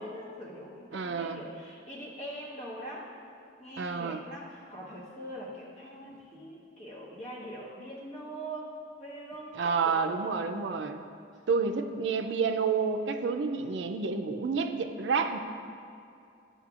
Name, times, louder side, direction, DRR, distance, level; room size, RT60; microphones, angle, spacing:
voice 1, 0.0-3.1 3.6-10.1, equal, 40° left, -6 dB, 1.4 m, -42 dB
voice 2, 0.9-1.4 3.8-4.2 6.0-6.2 9.5-11.0 11.5-15.4, right 5 dB, 70° right, 6 dB, 0.4 m, -29 dB
11.0 x 5.6 x 2.4 m, 2.5 s
head